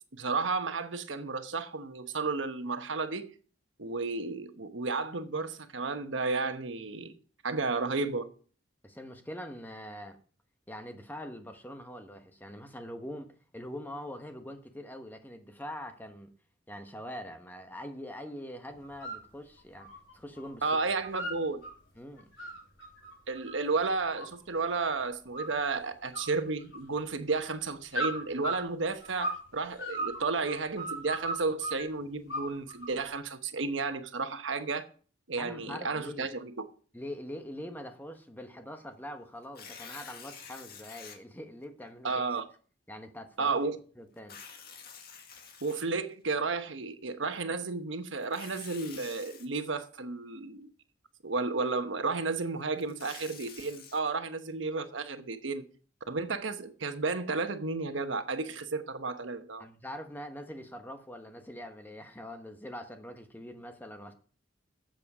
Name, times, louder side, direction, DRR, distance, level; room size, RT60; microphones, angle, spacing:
voice 1, 0.1-3.3 3.8-7.1 7.4-8.3 20.6-21.6 23.3-34.9 35.3-36.7 42.0-42.4 43.4-43.8 45.6-50.7 51.2-55.7 56.1-59.7, right 4 dB, 85° right, 1.1 m, -32 dB
voice 2, 8.8-10.2 10.7-16.3 16.7-20.6 22.0-22.3 35.4-36.3 36.9-42.4 42.9-43.6 44.0-44.4 59.6-64.1, left 1 dB, 10° left, 1.2 m, -43 dB
sound 1, 18.8-19.2 19.6-20.5 20.8-21.7 22.2-24.9 25.3-25.8 26.1-27.1 27.9-29.5 29.8-31.8 32.3-33.0, right 1 dB, 85° left, 4.3 m, -37 dB
Tearing, 39.4-41.2 41.8-41.9 44.2-46.3 48.2-49.5 52.6-54.0, left 6 dB, 55° left, 1.8 m, -48 dB
13.0 x 7.7 x 4.9 m
head